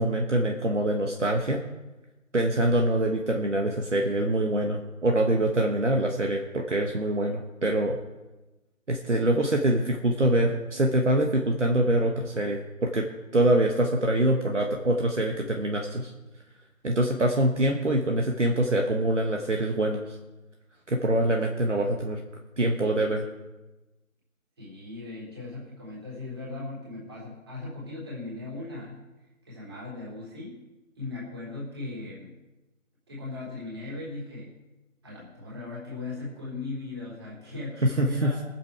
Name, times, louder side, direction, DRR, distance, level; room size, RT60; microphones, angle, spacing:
voice 1, 0.0-1.6 2.3-8.0 8.9-13.1 13.3-16.1 16.8-20.2 20.9-22.2 22.6-23.2 37.8-38.3, right 1 dB, 60° right, 2 dB, 1.4 m, -24 dB
voice 2, 24.6-29.0 29.5-30.6 31.0-32.4 33.1-34.5 35.0-38.4, left 2 dB, 20° right, -6 dB, 3.5 m, -38 dB
21.0 x 7.6 x 4.7 m, 1.1 s
figure-of-eight pair, 165°, 41 cm